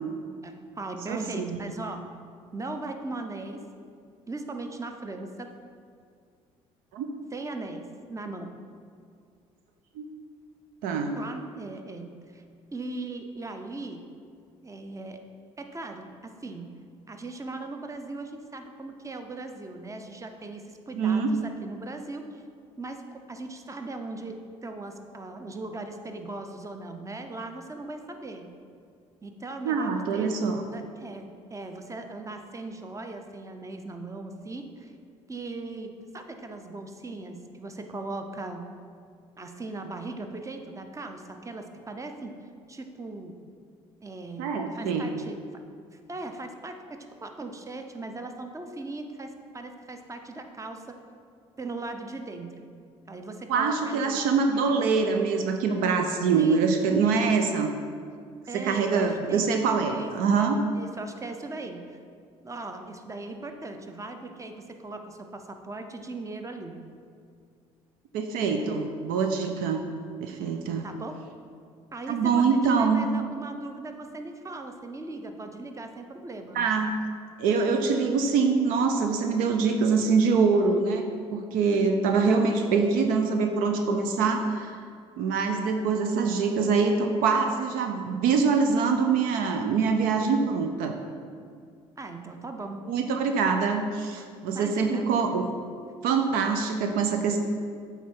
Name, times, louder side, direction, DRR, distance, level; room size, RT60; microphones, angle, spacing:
voice 1, 0.4-2.0 2.5-3.6 4.3-5.5 7.3-7.8 8.1-8.5 11.2-12.4 12.7-14.0 14.6-15.2 15.6-16.7 17.1-22.4 22.8-23.0 23.3-24.4 24.6-28.5 29.2-30.3 30.6-34.9 35.3-38.6 39.4-42.3 42.7-43.3 44.0-45.4 46.1-50.8 51.6-52.7 53.1-54.2 56.3-56.6 58.5-59.5 59.8-60.1 60.4-60.5 60.7-62.0 62.4-64.5 64.8-66.8 70.8-71.2 71.9-76.6 92.0-92.8 94.2-94.3 94.5-95.1, right 2 dB, 20° right, 5 dB, 0.7 m, -38 dB
voice 2, 1.1-1.7 6.9-7.1 10.0-10.1 10.8-11.2 20.9-21.3 29.6-30.6 44.4-45.1 53.5-57.7 58.5-60.6 68.1-69.8 70.2-70.9 72.1-73.1 76.5-76.9 77.4-84.7 85.2-91.0 92.9-95.5 96.0-97.4, right 5 dB, 70° right, 5 dB, 0.5 m, -24 dB
8.2 x 3.5 x 4.5 m, 2.2 s
hypercardioid pair, 55°, 15 cm